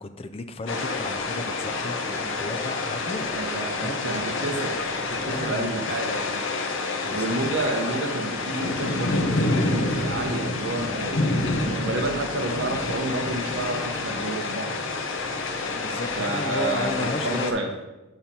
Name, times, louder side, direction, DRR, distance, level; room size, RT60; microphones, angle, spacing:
voice 1, 0.0-3.3 3.7-4.2 5.3-5.9 7.0-7.4 15.7-17.8, left 2 dB, 30° left, 9 dB, 0.4 m, -34 dB
sound 1, 0.7-17.5, left 3 dB, 70° left, 0.8 m, -28 dB
voice 2, 3.3-4.7 5.1-6.4 7.1-14.9 16.2-17.7, right 2 dB, 60° right, 2 dB, 0.9 m, -30 dB
7.7 x 5.4 x 4.3 m, 1.1 s
head